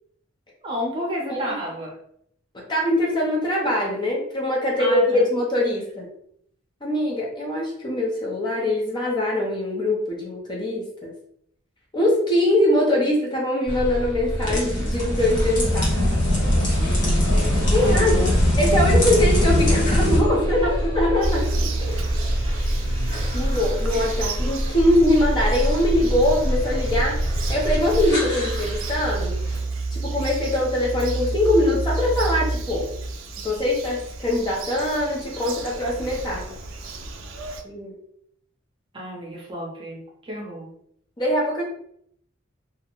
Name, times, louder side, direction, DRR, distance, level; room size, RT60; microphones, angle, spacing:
voice 1, 0.6-1.9 4.8-5.2 16.7-18.4 22.5-22.7 38.9-40.7, equal, 25° right, -2 dB, 0.6 m, -32 dB
voice 2, 2.5-6.1 6.8-11.1 11.9-15.9 17.7-18.2 18.6-22.0 23.3-27.2 27.5-29.3 29.9-32.9 33.4-36.4 37.6-37.9 41.2-41.6, left 1 dB, 25° left, -2 dB, 0.5 m, -22 dB
sound 1, 13.7-29.6, equal, 60° left, 1.2 m, -27 dB
sound 2, 14.3-20.2, left 1 dB, 40° left, 0.8 m, -21 dB
Bird vocalization bird call bird song, 21.2-37.6, right 3 dB, 80° right, 0.4 m, -31 dB
2.4 x 2.0 x 2.9 m, 0.69 s
head